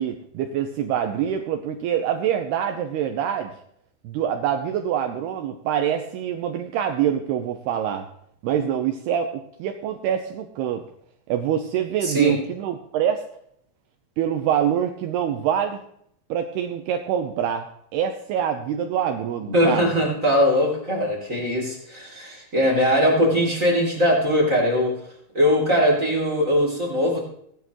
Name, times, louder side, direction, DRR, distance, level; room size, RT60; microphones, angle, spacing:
voice 1, 0.0-3.5 4.0-8.1 8.4-10.8 11.3-13.3 14.2-15.8 16.3-19.9, right 9 dB, 85° right, 5 dB, 2.4 m, -25 dB
voice 2, 12.0-12.3 19.5-24.9 25.3-27.3, equal, 20° right, -3 dB, 2.5 m, -21 dB
17.5 x 10.5 x 3.1 m, 0.70 s
omnidirectional pair, 5.4 m